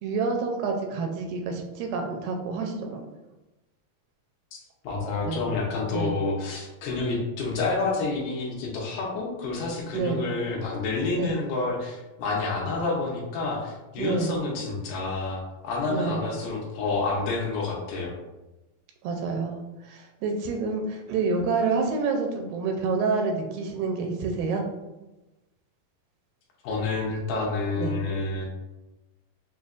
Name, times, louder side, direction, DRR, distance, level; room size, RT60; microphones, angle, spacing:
voice 1, 0.0-3.0 5.2-5.4 5.9-6.2 9.9-10.2 11.1-11.4 14.0-14.4 15.9-16.3 19.0-24.6 27.8-28.0, right 4 dB, 85° right, 3 dB, 2.2 m, -28 dB
voice 2, 4.8-18.1 26.6-28.5, left 3 dB, 75° left, -2 dB, 2.2 m, -29 dB
6.2 x 2.2 x 2.4 m, 1.1 s
omnidirectional pair, 4.2 m